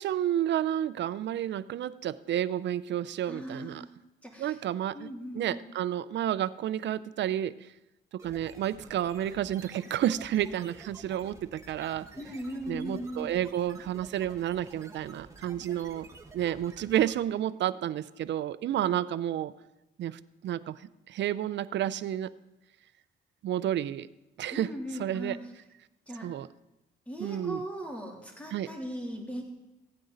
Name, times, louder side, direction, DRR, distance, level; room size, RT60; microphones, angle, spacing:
voice 1, 0.0-3.8 4.4-5.1 5.3-7.7 8.1-12.1 12.7-16.1 16.3-19.5 20.0-20.8 21.1-22.3 23.4-24.1 24.4-24.7 25.0-25.4 26.2-26.5 27.2-27.6 28.5-28.7, right 11 dB, 65° right, 16 dB, 0.6 m, -30 dB
voice 2, 3.2-3.9 4.2-4.6 4.9-5.6 12.2-13.3 24.5-25.4 26.1-26.3 27.1-29.4, equal, 5° left, -1 dB, 3.1 m, -38 dB
sound 1, 8.2-17.4, right 3 dB, 15° right, 1.7 m, -51 dB
16.0 x 9.2 x 3.9 m, 0.96 s
cardioid pair, 90°, 20 cm